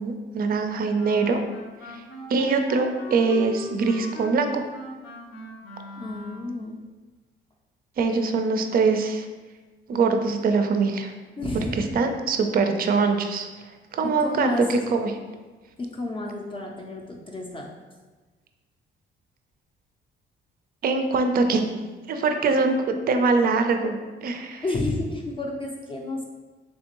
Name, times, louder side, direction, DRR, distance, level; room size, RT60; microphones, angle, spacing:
voice 1, 0.0-1.4 1.9-2.0 2.3-4.6 8.0-9.3 9.9-11.1 11.8-13.5 13.9-15.1 20.8-24.0 24.2-24.6, right 4 dB, 50° right, 6 dB, 0.4 m, -23 dB
Wind instrument woodwind instrument, 0.9-6.6, left 1 dB, 80° left, 0.7 m, -39 dB
voice 2, 6.0-6.8 11.4-11.9 14.0-14.8 15.8-17.7 24.6-26.3, left 2 dB, 25° left, -1 dB, 0.4 m, -30 dB
3.4 x 3.2 x 2.9 m, 1.3 s
cardioid pair, 90°, 20 cm